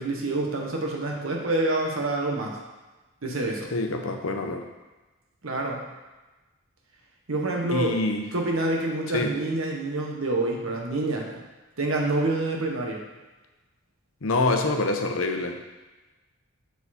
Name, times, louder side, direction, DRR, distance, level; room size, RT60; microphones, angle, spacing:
voice 1, 0.0-2.6 3.2-3.7 5.4-5.9 7.3-7.9 8.3-11.4 11.8-13.0, right 2 dB, 65° right, 0 dB, 1.1 m, -27 dB
voice 2, 3.7-4.6 7.7-8.2 9.1-9.3 14.2-15.6, left 2 dB, 70° left, 5 dB, 0.7 m, -26 dB
6.9 x 4.7 x 4.2 m, 1.2 s
head